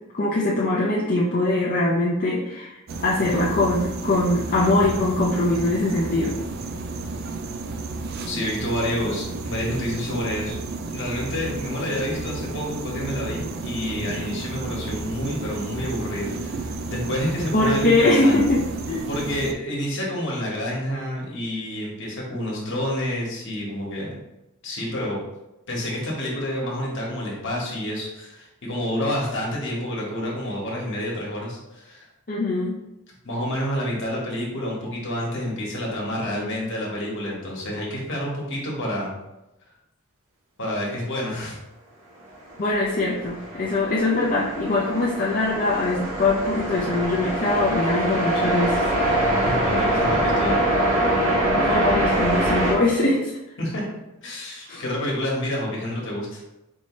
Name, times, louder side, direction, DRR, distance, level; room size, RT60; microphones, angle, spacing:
voice 1, 0.1-6.3 17.5-18.6 18.9-19.1 32.3-32.8 42.6-48.8 51.6-53.4 54.7-54.8, left 2 dB, 40° left, -5 dB, 0.5 m, -22 dB
sound 1, 2.9-19.5, right 3 dB, 45° right, 0.3 m, -32 dB
voice 2, 8.0-10.5 10.9-18.4 19.1-24.1 24.6-25.2 25.7-32.1 33.2-39.1 40.6-41.6 49.4-50.6 53.6-53.8 54.2-56.4, left 1 dB, 60° left, -3 dB, 1.3 m, -29 dB
sound 2, 42.6-52.7, right 1 dB, 80° right, 1.3 m, -23 dB
4.6 x 2.8 x 3.1 m, 0.95 s
head